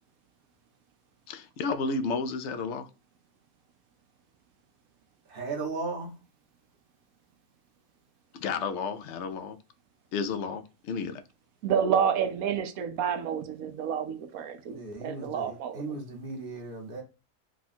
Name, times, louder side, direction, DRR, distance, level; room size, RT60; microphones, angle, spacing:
voice 1, 1.3-2.9 8.3-9.6 10.1-11.2, left 4 dB, 65° left, 0.8 m, -32 dB
voice 2, 5.3-6.1 14.7-17.0, right 3 dB, 45° right, 1.2 m, -36 dB
voice 3, 11.6-16.0, right 7 dB, 80° right, 1.1 m, -29 dB
3.6 x 2.3 x 4.1 m
omnidirectional pair, 1.5 m